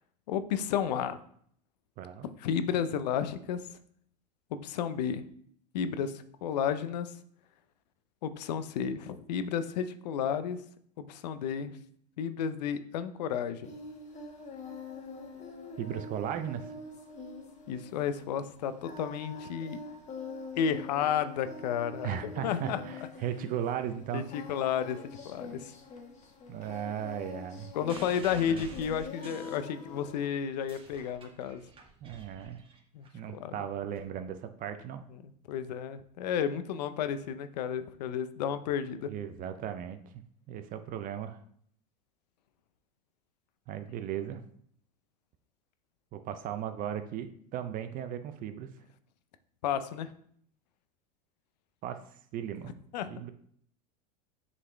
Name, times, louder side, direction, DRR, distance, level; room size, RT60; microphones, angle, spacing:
voice 1, 0.3-1.2 2.4-3.6 4.5-5.2 5.7-7.1 8.2-10.6 11.0-11.7 12.2-13.7 17.7-19.8 20.6-22.8 24.1-25.0 25.2-25.7 27.7-31.6 32.9-33.1 33.3-33.6 35.5-39.1 49.6-50.1 52.9-53.1, left 8 dB, 80° left, 11 dB, 0.7 m, -32 dB
voice 2, 2.0-2.3 15.8-16.7 22.0-24.2 26.5-27.7 28.5-28.6 32.0-32.6 33.1-35.0 39.1-40.0 40.5-41.4 43.7-44.4 46.1-48.7 51.8-52.0 52.3-52.7 53.1-53.3, right 9 dB, 40° right, 9 dB, 0.6 m, -36 dB
Singing, 13.6-30.3, left 3 dB, 35° left, 1.5 m, -45 dB
sound 1, 27.9-30.1 30.5-33.1 34.0-34.1, right 4 dB, 25° right, 1.6 m, -50 dB
7.3 x 4.1 x 3.4 m, 0.63 s
hypercardioid pair, 105°, 21 cm